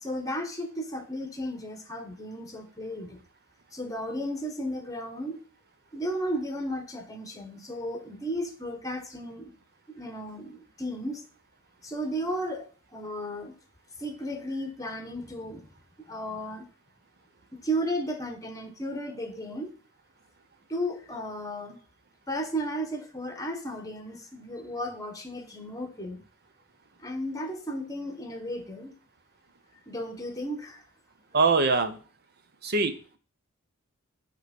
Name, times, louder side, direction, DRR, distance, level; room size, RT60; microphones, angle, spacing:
voice 1, 0.0-3.2 3.7-5.4 5.9-9.5 9.9-11.2 11.8-13.5 14.0-15.7 16.1-16.7 17.5-19.7 20.7-21.8 22.3-26.2 27.0-28.9 29.9-30.8, equal, 15° left, 6 dB, 1.2 m, -34 dB
voice 2, 31.3-32.0 32.6-33.2, right 4 dB, 45° right, 9 dB, 0.8 m, -23 dB
9.0 x 3.2 x 5.2 m, 0.39 s
head